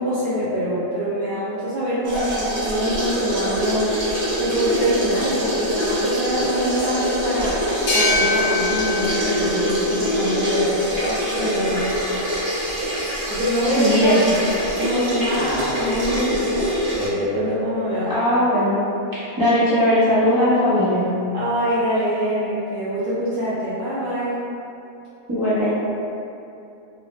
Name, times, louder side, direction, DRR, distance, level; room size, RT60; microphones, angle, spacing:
voice 1, 0.0-7.6 7.9-12.0 13.3-14.4 14.8-16.7 16.9-18.1 21.3-24.4, equal, 65° right, -11 dB, 0.5 m, -24 dB
sound 1, 2.1-17.1, equal, 45° right, 0.9 m, -24 dB
sound 2, 7.9-11.2, left 3 dB, 60° left, 0.8 m, -26 dB
voice 2, 13.6-14.2 18.1-18.8 19.1-21.0 25.3-25.7, left 1 dB, 20° right, -12 dB, 0.7 m, -19 dB
2.5 x 2.0 x 3.1 m, 2.7 s
omnidirectional pair, 1.4 m